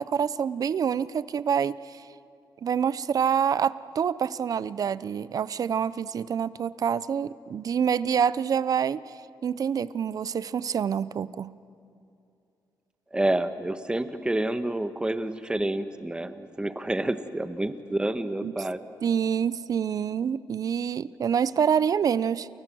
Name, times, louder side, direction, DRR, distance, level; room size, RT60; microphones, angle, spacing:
voice 1, 0.0-2.0 2.6-9.0 9.4-11.5 18.4-18.5 19.0-22.5, right 7 dB, 55° right, 17 dB, 0.7 m, -26 dB
voice 2, 13.1-18.8, right 1 dB, 10° right, 10 dB, 1.4 m, -28 dB
29.0 x 29.0 x 6.3 m, 2.6 s
cardioid pair, 95°, 7 cm